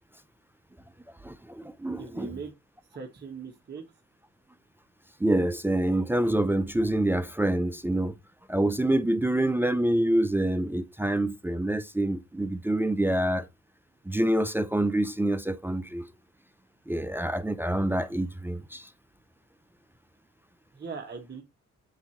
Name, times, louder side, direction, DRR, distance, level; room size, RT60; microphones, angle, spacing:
voice 1, 1.2-2.3 5.2-8.1 8.5-13.5 14.1-16.1 16.9-18.9, right 1 dB, 5° right, 0.4 m, -26 dB
voice 2, 2.0-2.5 2.9-3.8 20.7-21.4, right 5 dB, 35° right, 1.3 m, -39 dB
8.1 x 2.7 x 5.7 m
cardioid pair, 90°, 30 cm